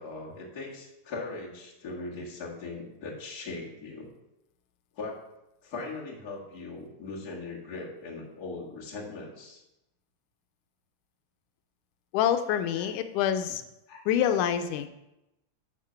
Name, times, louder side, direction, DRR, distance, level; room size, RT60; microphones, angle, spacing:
voice 1, 0.0-4.1 5.0-5.2 5.6-9.6 12.8-12.9 13.9-14.1, left 3 dB, 35° left, -4 dB, 2.1 m, -39 dB
voice 2, 12.1-13.6 14.1-14.9, left 9 dB, 90° left, 9 dB, 2.1 m, -26 dB
12.5 x 4.5 x 5.7 m, 0.91 s
omnidirectional pair, 3.5 m